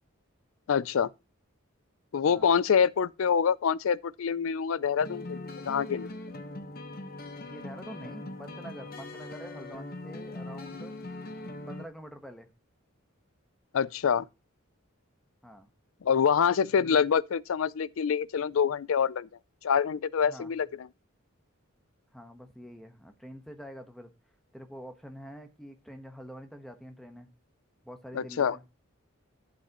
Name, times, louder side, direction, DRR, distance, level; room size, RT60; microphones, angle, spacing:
voice 1, 0.7-1.1 2.1-6.1 13.7-14.3 16.0-19.3 19.6-20.9 28.1-28.6, left 7 dB, 75° left, 0.4 m, -26 dB
sound 1, 5.0-11.9, left 2 dB, 45° left, 1.1 m, -41 dB
voice 2, 7.4-10.9 11.7-12.5 15.4-15.7 16.8-17.0 20.3-20.5 22.1-24.1 24.5-27.3 27.8-28.6, equal, ahead, 1.1 m, -46 dB
11.5 x 8.4 x 3.0 m
head